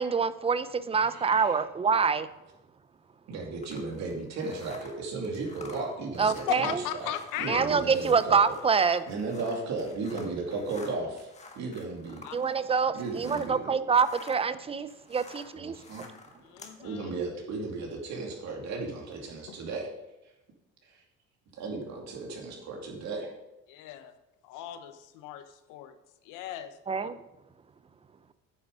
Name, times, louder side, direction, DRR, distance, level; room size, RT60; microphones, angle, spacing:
voice 1, 0.0-2.3 6.2-6.8 7.5-9.0 12.3-16.1 26.9-27.2, right 5 dB, 20° right, 14 dB, 0.5 m, -26 dB
voice 2, 1.1-1.5 3.3-6.7 7.4-8.4 9.1-11.3 11.6-12.2 12.9-13.6 15.6-16.1 16.8-19.9 21.6-23.3, right 3 dB, 60° right, 0 dB, 2.5 m, -35 dB
sound 1, 3.6-13.6 13.9-16.8, left 3 dB, 20° left, 1.4 m, -50 dB
voice 3, 6.2-7.8 12.2-12.4 16.4-17.1 23.7-24.1 24.4-26.0 26.2-27.1, left 11 dB, 85° left, 10 dB, 1.0 m, -37 dB
9.2 x 7.1 x 5.1 m, 0.95 s
cardioid pair, 110°, 30 cm